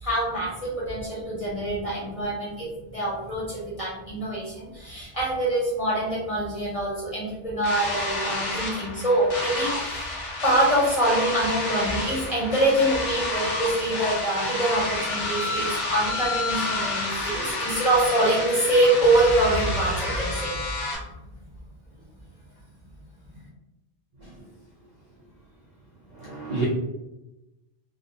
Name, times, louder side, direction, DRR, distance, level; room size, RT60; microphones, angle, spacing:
voice 1, 0.0-2.7 2.9-10.0 10.4-20.6, right 1 dB, 35° left, -5 dB, 0.7 m, -25 dB
sound 1, 7.6-21.0, left 2 dB, 85° left, 0.9 m, -30 dB
voice 2, 26.1-26.7, right 3 dB, 60° right, -5 dB, 0.4 m, -30 dB
2.2 x 2.0 x 2.7 m, 0.96 s
omnidirectional pair, 1.2 m